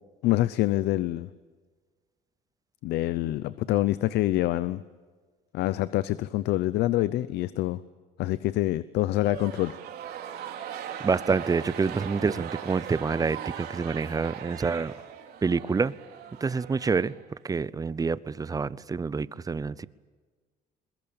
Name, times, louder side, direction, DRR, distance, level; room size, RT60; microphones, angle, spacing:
voice 1, 0.2-1.3 2.8-4.8 5.5-7.8 8.2-9.8, left 16 dB, 80° left, 16 dB, 0.7 m, -26 dB
sound 1, 9.1-17.6, right 9 dB, 70° right, 3.1 m, -40 dB
voice 2, 11.0-14.9 15.4-15.9 16.4-17.1 17.4-19.9, right 5 dB, 20° right, 19 dB, 0.7 m, -27 dB
23.0 x 21.0 x 8.8 m, 1.5 s
cardioid pair, 110°, 17 cm